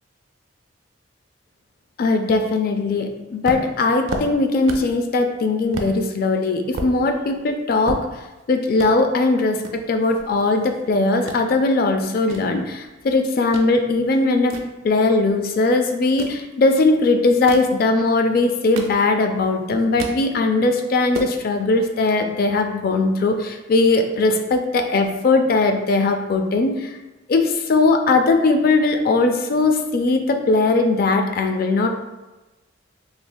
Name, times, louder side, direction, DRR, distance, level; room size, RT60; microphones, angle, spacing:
voice 1, 2.0-8.1 8.5-14.6 14.8-27.0 27.3-31.9, left 3 dB, 50° left, 5 dB, 0.3 m, -19 dB
sound 1, 3.5-5.0 5.3-5.4 5.7-5.9 6.4-8.4 8.7-8.9 9.6-10.8 11.1-11.4 12.0-13.7 14.1-15.4 16.0-16.4 17.3-17.8 18.4-19.4 19.7-20.2 20.6-20.7 21.0-21.4, right 2 dB, 85° right, 0.4 m, -33 dB
3.1 x 3.0 x 2.2 m, 1.1 s
head